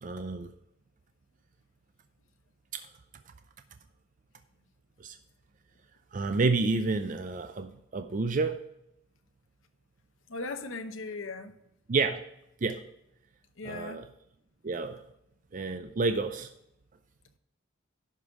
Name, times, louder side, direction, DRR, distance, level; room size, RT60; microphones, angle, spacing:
voice 1, 0.0-0.5 2.7-2.8 5.0-5.2 6.1-8.6 11.9-12.2 12.6-12.8 13.6-14.1 14.6-15.0 15.5-16.5, right 3 dB, 40° right, 8 dB, 0.4 m, -29 dB
voice 2, 10.3-11.5 13.6-14.0, left 3 dB, 80° left, 8 dB, 0.9 m, -38 dB
11.0 x 5.4 x 4.7 m, 0.81 s
head